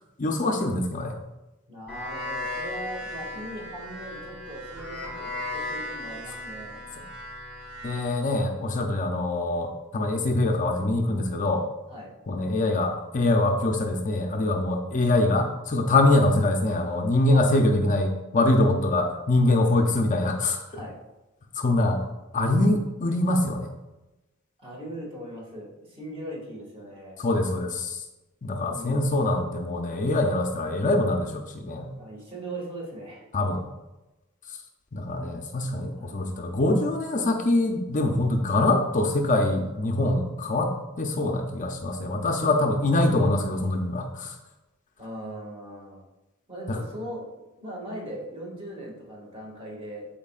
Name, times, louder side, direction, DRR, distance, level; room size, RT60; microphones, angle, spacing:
voice 1, 0.2-1.1 7.8-11.7 12.3-20.6 21.6-22.0 22.3-23.7 27.2-28.0 28.4-31.9 33.3-33.7 34.9-44.4 46.7-46.8, left 2 dB, 40° left, 3 dB, 0.6 m, -24 dB
voice 2, 1.7-6.9 11.9-12.1 17.3-17.4 19.4-19.8 20.7-21.0 24.6-27.2 28.7-29.0 32.0-33.3 35.9-36.1 45.0-46.0 46.5-47.2 47.6-50.1, right 1 dB, 30° right, -3 dB, 2.0 m, -39 dB
sound 1, 1.9-8.0, left 1 dB, 5° right, 2.5 m, -36 dB
12.5 x 4.4 x 2.4 m, 1.0 s
head